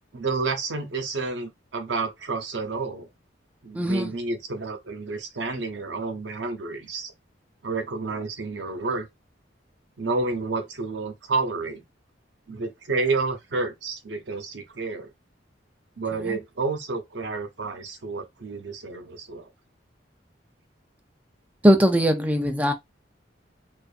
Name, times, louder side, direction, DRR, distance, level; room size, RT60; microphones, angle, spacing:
voice 1, 0.1-3.1 3.6-7.1 7.6-9.1 10.0-11.8 12.5-15.1 16.0-19.5, right 3 dB, 70° right, 0.7 m, -30 dB
voice 2, 3.7-4.1 16.3-16.4 21.6-22.7, equal, 10° right, 0.4 m, -20 dB
2.5 x 2.4 x 2.4 m
head